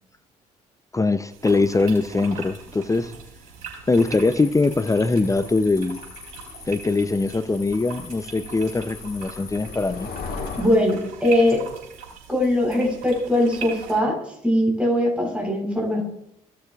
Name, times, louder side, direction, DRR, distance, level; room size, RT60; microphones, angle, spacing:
voice 1, 0.9-3.1 3.9-6.0 6.7-10.1, left 3 dB, 15° left, 13 dB, 0.6 m, -22 dB
sound 1, 1.3-14.0, right 5 dB, 85° right, 4.3 m, -41 dB
sound 2, 3.9-10.7, left 4 dB, 55° left, 1.7 m, -39 dB
voice 2, 10.6-11.6 12.3-16.0, left 1 dB, 5° right, -1 dB, 4.1 m, -21 dB
17.0 x 6.8 x 2.4 m, 0.77 s
hypercardioid pair, 45°, 18 cm